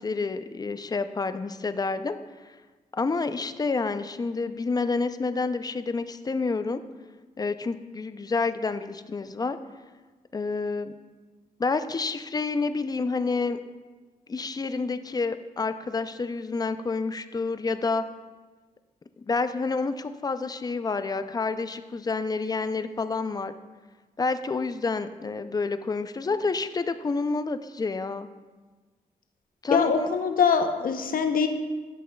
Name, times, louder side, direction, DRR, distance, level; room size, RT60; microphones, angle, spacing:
voice 1, 0.0-2.2 3.0-6.8 7.4-9.6 10.3-10.9 11.6-13.6 14.3-18.0 19.2-23.5 24.2-28.3 29.6-30.2, left 4 dB, 25° left, 11 dB, 0.4 m, -28 dB
voice 2, 29.7-31.5, left 6 dB, 70° left, 6 dB, 0.7 m, -23 dB
12.0 x 5.4 x 2.2 m, 1.3 s
cardioid pair, 75°, 15 cm